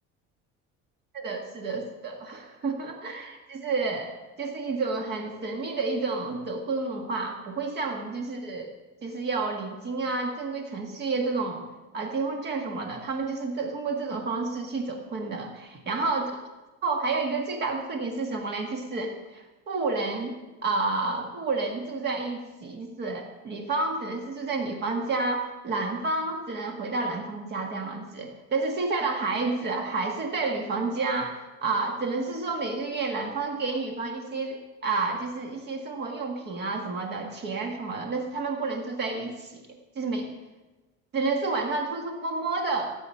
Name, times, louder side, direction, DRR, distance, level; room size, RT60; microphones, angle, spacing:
voice 1, 1.1-8.7 9.0-11.7 11.9-16.4 16.8-39.6 39.9-40.3 41.1-42.9, right 3 dB, 35° right, 3 dB, 1.6 m, -30 dB
17.0 x 8.1 x 5.6 m, 1.2 s
cardioid pair, 165°, 29 cm